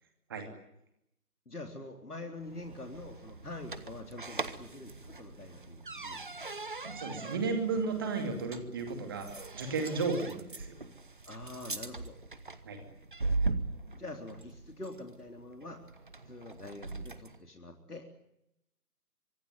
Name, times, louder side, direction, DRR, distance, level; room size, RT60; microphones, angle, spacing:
voice 1, 1.5-6.3 11.3-12.2 13.9-15.8 16.3-18.1, left 2 dB, 70° left, 3 dB, 3.8 m, -45 dB
sound 1, 2.3-17.4, right 3 dB, 30° right, 1.3 m, -40 dB
voice 2, 7.0-10.8 12.7-12.8, right 4 dB, 15° right, 5 dB, 2.6 m, -33 dB
25.0 x 20.0 x 9.6 m, 0.80 s
figure-of-eight pair, 160°, 47 cm